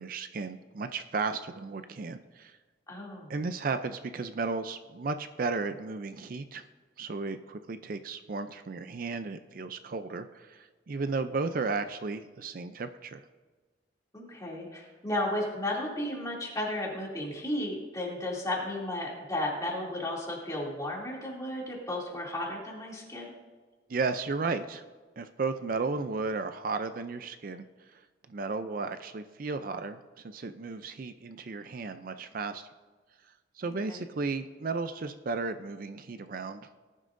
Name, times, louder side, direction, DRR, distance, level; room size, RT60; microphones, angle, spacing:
voice 1, 0.0-2.6 3.3-6.6 7.0-13.2 23.9-24.8 25.2-27.7 27.9-28.0 28.3-32.7 33.6-36.7, right 4 dB, 50° right, 10 dB, 0.4 m, -34 dB
voice 2, 2.9-3.3 14.1-23.3 33.9-34.0, left 1 dB, 20° left, -4 dB, 2.7 m, -34 dB
19.0 x 11.0 x 2.6 m, 1.4 s
head